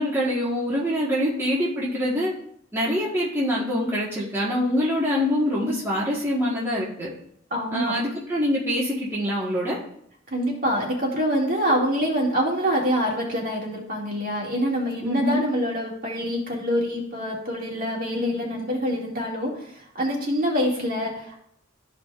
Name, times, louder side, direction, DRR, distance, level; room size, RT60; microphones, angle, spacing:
voice 1, 0.0-2.3 2.7-7.1 7.7-9.8 15.0-15.4, equal, 10° right, -7 dB, 1.3 m, -25 dB
voice 2, 7.5-8.0 10.3-21.4, equal, 45° right, -2 dB, 2.0 m, -25 dB
13.0 x 5.0 x 2.4 m, 0.68 s
head